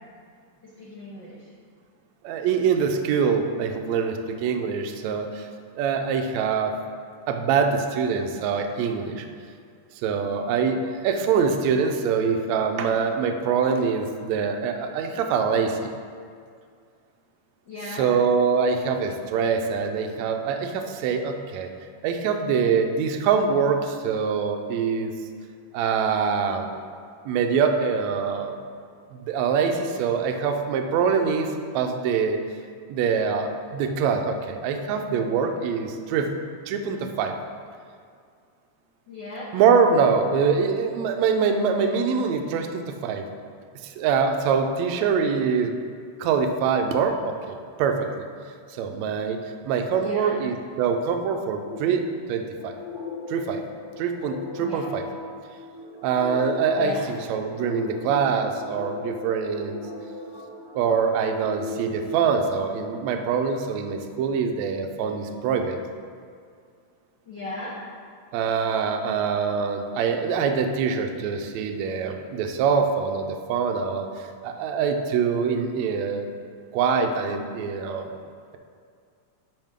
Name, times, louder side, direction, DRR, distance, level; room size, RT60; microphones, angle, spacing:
voice 1, 0.6-1.5 17.7-18.1 39.1-39.5 50.0-50.4 54.6-54.9 56.8-57.0 67.3-67.8, left 2 dB, 75° left, -7 dB, 1.0 m, -37 dB
voice 2, 2.2-5.5 5.7-6.8 7.3-9.2 10.0-15.9 17.9-21.7 22.0-25.2 25.7-26.7 27.2-28.6 29.1-32.4 32.9-36.3 36.7-37.4 39.5-43.2 43.8-45.7 46.2-48.3 48.7-49.4 49.6-52.7 53.3-53.6 54.0-55.0 56.0-59.8 60.7-65.8 68.3-76.3 76.7-78.1, right 6 dB, 80° right, 5 dB, 1.6 m, -24 dB
sound 1, 51.6-62.9, left 2 dB, 35° left, 0.7 m, -38 dB
11.0 x 5.7 x 3.6 m, 2.2 s
omnidirectional pair, 3.8 m